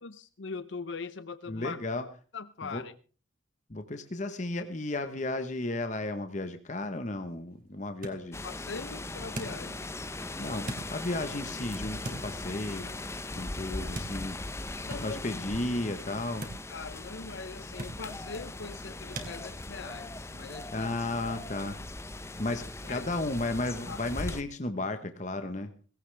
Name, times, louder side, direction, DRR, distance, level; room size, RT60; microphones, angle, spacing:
voice 1, 0.0-1.8 2.3-2.9 8.4-9.8 14.9-15.2 16.7-20.9 22.5-22.6 22.8-23.0 23.9-24.0, left 4 dB, 65° left, 0.7 m, -41 dB
voice 2, 1.5-2.0 2.6-2.8 3.7-8.4 10.4-12.9 13.4-14.4 15.0-16.5 20.7-21.8 22.2-25.7, left 2 dB, 35° left, 1.1 m, -34 dB
sound 1, 6.8-19.3, right 1 dB, 45° right, 3.0 m, -46 dB
sound 2, 8.3-24.4, left 2 dB, 15° left, 0.7 m, -39 dB
19.0 x 16.5 x 3.4 m
head